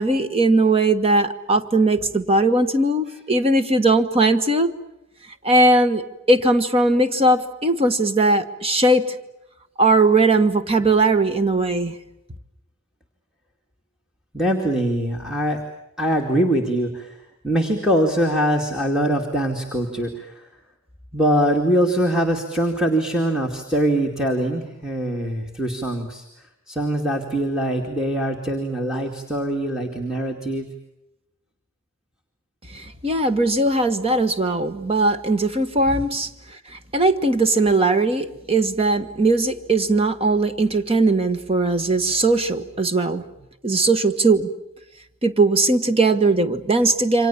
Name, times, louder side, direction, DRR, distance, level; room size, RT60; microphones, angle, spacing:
voice 1, 0.0-4.7 5.4-9.1 9.8-11.9 32.7-36.3 36.9-43.2 43.6-44.5 45.2-47.3, right 2 dB, 30° right, 9 dB, 1.5 m, -19 dB
voice 2, 14.3-15.6 16.0-17.2 17.4-20.5 21.1-26.2 26.7-30.7, right 1 dB, 5° right, -2 dB, 2.4 m, -22 dB
28.5 x 25.5 x 7.2 m, 0.87 s
head